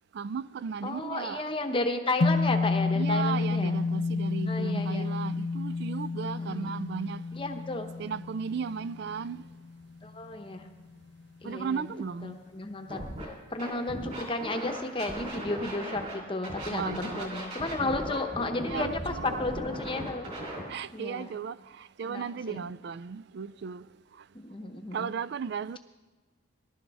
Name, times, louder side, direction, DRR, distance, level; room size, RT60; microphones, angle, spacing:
voice 1, 0.1-1.5 3.0-7.3 8.0-9.4 11.4-12.4 16.7-17.3 18.7-19.4 20.7-23.9 24.2-24.3 24.9-25.8, right 6 dB, 55° right, 0.3 m, -35 dB
voice 2, 0.8-3.7 4.4-5.1 6.4-6.8 7.3-7.9 10.0-10.7 11.4-11.8 12.2-13.1 13.5-20.3 20.9-21.3 22.1-22.6 24.3-25.1, left 2 dB, 25° left, 0.8 m, -33 dB
sound 1, 2.2-10.6, left 3 dB, 55° left, 0.5 m, -30 dB
Scratching (performance technique), 12.9-13.2 13.6-16.1 16.4-20.6, equal, 35° right, 3.3 m, -38 dB
19.0 x 11.5 x 3.5 m
head